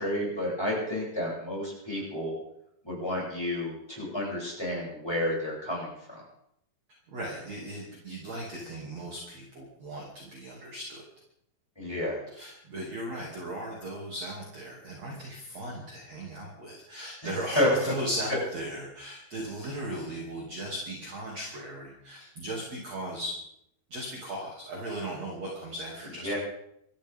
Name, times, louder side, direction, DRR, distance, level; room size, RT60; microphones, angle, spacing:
voice 1, 0.0-2.4 2.8-6.2 11.8-12.2 17.2-17.3 17.5-17.9 26.2-26.4, left 1 dB, 5° left, -5 dB, 7.6 m, -30 dB
voice 2, 7.1-11.0 12.3-23.3 23.9-26.4, right 1 dB, 40° right, -2 dB, 3.5 m, -37 dB
26.5 x 13.5 x 3.7 m, 0.75 s
omnidirectional pair, 5.3 m